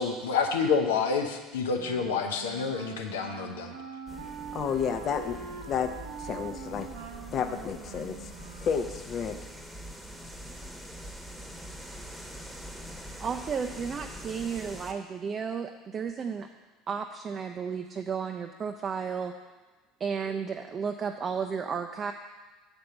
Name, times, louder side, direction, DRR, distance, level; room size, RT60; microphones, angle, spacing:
voice 1, 0.0-3.8, left 5 dB, 80° left, 4 dB, 0.7 m, -28 dB
Wind instrument woodwind instrument, 1.7-9.1, right 7 dB, 75° right, 0.7 m, -43 dB
sound 1, 4.1-14.9, equal, 10° right, 1.1 m, -44 dB
voice 2, 4.5-5.4 5.7-5.9 6.2-6.9 7.3-8.3 8.6-9.4, left 7 dB, 45° left, 7 dB, 0.7 m, -31 dB
voice 3, 13.2-16.5 16.9-19.3 20.0-22.1, right 6 dB, 35° right, 5 dB, 0.5 m, -33 dB
6.9 x 4.5 x 6.5 m, 1.2 s
hypercardioid pair, 70°, 0 cm